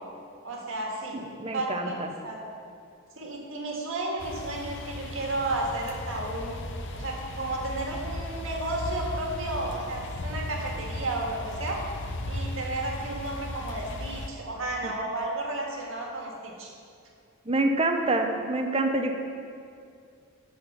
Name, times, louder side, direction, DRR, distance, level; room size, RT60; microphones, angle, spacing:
voice 1, 0.4-1.2 1.5-2.5 3.1-6.6 6.9-11.8 12.2-16.7, right 2 dB, 65° right, -1 dB, 1.7 m, -33 dB
voice 2, 1.1-2.1 14.8-14.9 17.5-19.1, right 2 dB, 30° right, 4 dB, 0.7 m, -27 dB
sound 1, 4.2-14.3, left 1 dB, 60° left, 0.7 m, -36 dB
11.5 x 4.4 x 6.7 m, 2.4 s
head